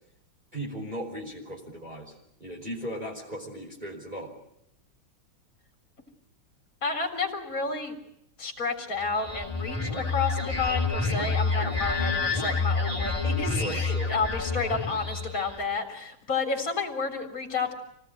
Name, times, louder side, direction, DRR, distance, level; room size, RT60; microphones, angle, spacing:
voice 1, 0.5-2.1 2.4-4.3 11.6-11.8 13.6-14.1, equal, 20° right, -2 dB, 5.2 m, -37 dB
voice 2, 6.8-7.9 8.4-17.7, left 4 dB, 40° left, 4 dB, 4.1 m, -31 dB
sound 1, 9.0-15.6, left 3 dB, 15° left, 3.6 m, -28 dB
26.5 x 19.0 x 9.2 m, 0.78 s
omnidirectional pair, 2.2 m